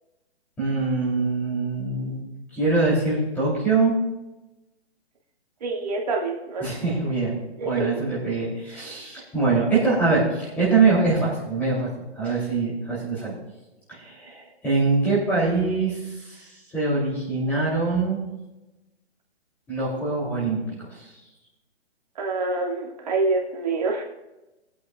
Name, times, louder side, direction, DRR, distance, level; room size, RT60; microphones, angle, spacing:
voice 1, 0.6-2.2 2.5-4.0 6.6-7.3 7.6-11.9 12.2-13.4 13.9-18.2 19.7-21.1, right 3 dB, 5° left, -8 dB, 3.0 m, -23 dB
voice 2, 5.6-6.7 7.6-8.1 22.2-24.0, right 3 dB, 35° right, -1 dB, 2.1 m, -26 dB
21.5 x 8.5 x 2.4 m, 1.0 s
hypercardioid pair, 175°, 33 cm